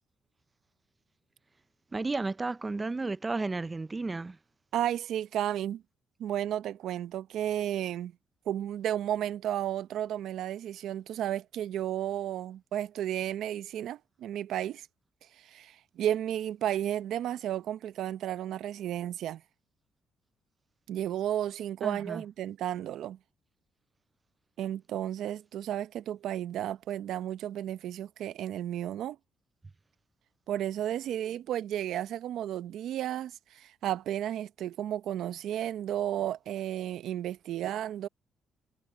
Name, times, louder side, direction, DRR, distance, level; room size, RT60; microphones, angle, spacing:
voice 1, 1.9-4.4 21.8-22.2, right 3 dB, 25° right, 0.4 m, -33 dB
voice 2, 4.7-5.8 6.2-8.1 8.5-14.9 15.3-19.4 20.9-23.2 24.6-29.2 30.5-38.1, right 11 dB, 80° right, 0.7 m, -33 dB
cardioid pair, 90°, 0 cm